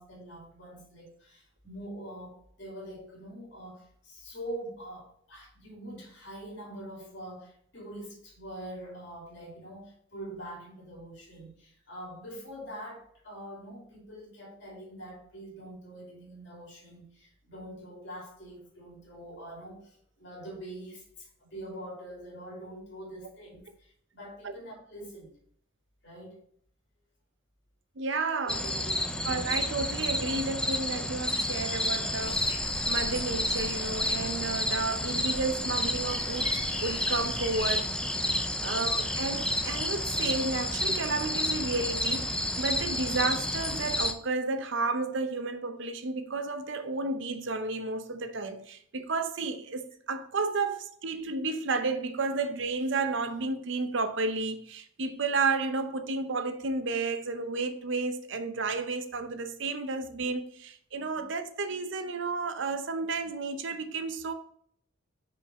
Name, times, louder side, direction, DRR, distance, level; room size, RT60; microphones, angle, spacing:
voice 1, 0.0-25.3 26.0-26.4 28.6-29.3 38.5-38.9 50.6-50.7 61.1-61.2, right 1 dB, 55° left, 2.8 m, -44 dB
voice 2, 28.0-28.7 29.3-36.5 36.8-37.9 38.2-64.3, right 3 dB, 60° right, 0.7 m, -32 dB
sound 1, 28.5-44.1, left 1 dB, 5° left, 0.4 m, -30 dB
sound 2, 32.2-37.7, left 1 dB, 25° left, 2.0 m, -45 dB
5.9 x 5.1 x 4.1 m
head